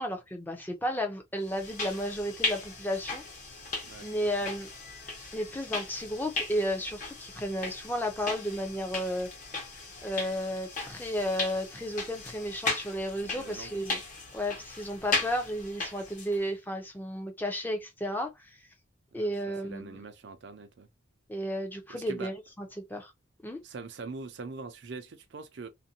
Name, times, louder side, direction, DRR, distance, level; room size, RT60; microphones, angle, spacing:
voice 1, 0.0-3.2 4.0-4.7 5.3-9.3 10.0-14.0 14.3-18.6 19.1-20.0 21.3-23.1 23.4-23.6, equal, 10° left, 0.5 m, -33 dB
sound 1, 1.5-16.4, left 3 dB, 40° left, 0.9 m, -37 dB
voice 2, 13.2-13.7 19.1-20.9 21.9-22.3 23.6-25.7, right 4 dB, 60° right, 0.5 m, -43 dB
2.6 x 2.2 x 2.7 m
head